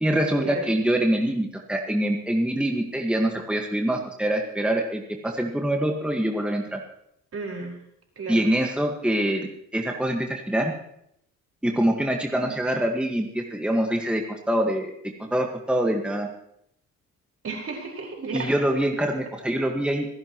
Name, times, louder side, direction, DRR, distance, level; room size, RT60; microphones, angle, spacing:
voice 1, 0.0-6.8 8.3-10.7 11.6-14.9 15.3-16.3 18.3-20.1, right 1 dB, 5° right, 1 dB, 1.7 m, -25 dB
voice 2, 7.3-7.7 8.2-8.4 12.4-12.5 17.4-18.5, right 4 dB, 50° right, 0 dB, 5.0 m, -33 dB
26.0 x 11.0 x 3.1 m, 0.74 s
cardioid pair, 90°, 30 cm